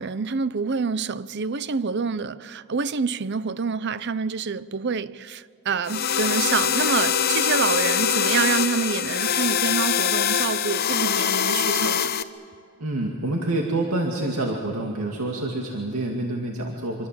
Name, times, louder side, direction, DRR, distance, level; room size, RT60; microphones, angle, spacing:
voice 1, 0.0-12.1, right 5 dB, 50° right, 0.6 m, -27 dB
sound 1, 5.9-12.2, left 8 dB, 45° left, 0.9 m, -23 dB
voice 2, 12.8-17.1, right 2 dB, 85° right, 2.3 m, -27 dB
26.0 x 24.5 x 7.6 m
head